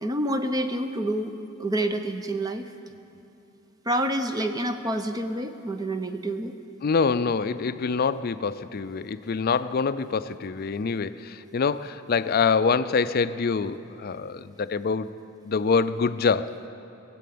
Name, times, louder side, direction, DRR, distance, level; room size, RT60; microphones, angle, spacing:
voice 1, 0.0-1.3 1.6-2.7 3.9-6.5, right 1 dB, 20° right, 7 dB, 0.6 m, -28 dB
voice 2, 6.8-15.1 15.4-16.5, left 5 dB, 45° left, 13 dB, 0.4 m, -25 dB
20.5 x 7.6 x 8.6 m, 2.8 s
head